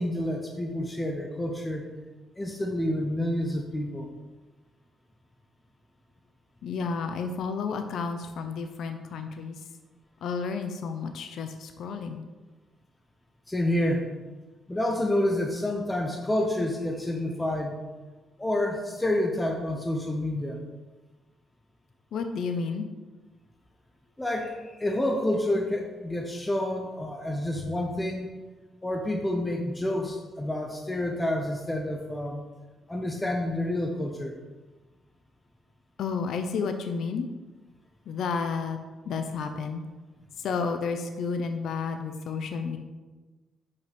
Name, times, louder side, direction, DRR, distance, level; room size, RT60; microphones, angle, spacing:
voice 1, 0.0-1.9 2.4-4.1 13.5-14.1 14.7-17.8 18.4-20.6 24.2-28.4 28.8-32.4 32.9-34.4, left 1 dB, 15° left, 2 dB, 0.9 m, -29 dB
voice 2, 6.6-9.6 10.2-12.2 22.1-22.9 36.0-37.3 38.1-38.8 39.0-39.8 40.4-42.8, left 5 dB, 70° left, 6 dB, 0.7 m, -31 dB
5.8 x 5.0 x 6.0 m, 1.2 s
cardioid pair, 90°, 0 cm